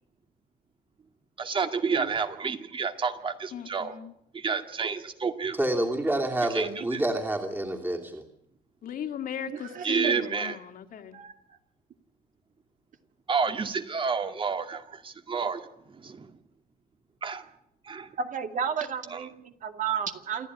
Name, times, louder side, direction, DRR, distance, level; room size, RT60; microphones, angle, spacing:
voice 1, 1.4-3.9 4.3-5.6 6.5-7.0 9.8-10.5 13.3-16.3 17.2-17.4 17.9-18.1 19.1-19.2, right 5 dB, 30° right, 8 dB, 2.1 m, -30 dB
voice 2, 3.5-4.1 8.8-11.2, left 8 dB, 55° left, 7 dB, 2.5 m, -38 dB
voice 3, 5.5-8.2, right 1 dB, 10° right, 2 dB, 2.9 m, -28 dB
voice 4, 9.5-10.2 11.1-11.6 18.2-20.5, right 7 dB, 50° right, 7 dB, 2.3 m, -33 dB
28.0 x 11.5 x 9.8 m, 0.75 s
cardioid pair, 110°, 17 cm